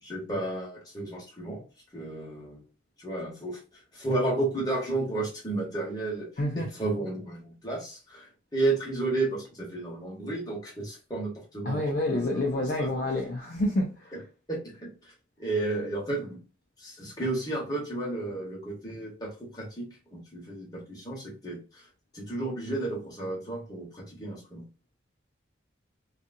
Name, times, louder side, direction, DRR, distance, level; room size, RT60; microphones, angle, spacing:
voice 1, 0.0-1.6 1.9-2.6 3.0-3.6 3.9-6.3 6.6-12.9 14.5-15.1 15.4-16.4 16.8-21.9 22.1-24.7, right 2 dB, 20° left, 1.1 m, -32 dB
voice 2, 6.4-6.7 11.7-14.1, left 1 dB, 50° left, 0.4 m, -28 dB
2.7 x 2.4 x 2.5 m
head